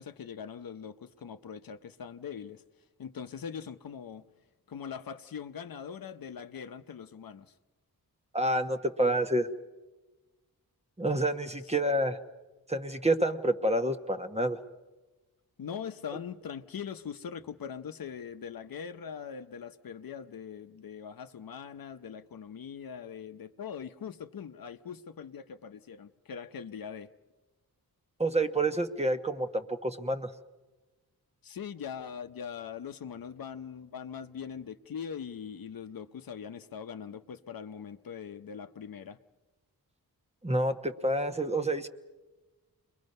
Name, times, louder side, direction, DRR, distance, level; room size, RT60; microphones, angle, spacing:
voice 1, 0.0-2.6 3.0-4.3 4.7-7.5 15.6-27.1 31.4-39.2, left 7 dB, 65° left, 9 dB, 0.7 m, -41 dB
voice 2, 8.3-9.5 11.0-12.2 12.7-14.6 28.2-30.3 40.4-41.9, right 1 dB, 15° right, 8 dB, 1.0 m, -28 dB
29.0 x 22.5 x 5.4 m, 1.2 s
wide cardioid pair, 90°, 38 cm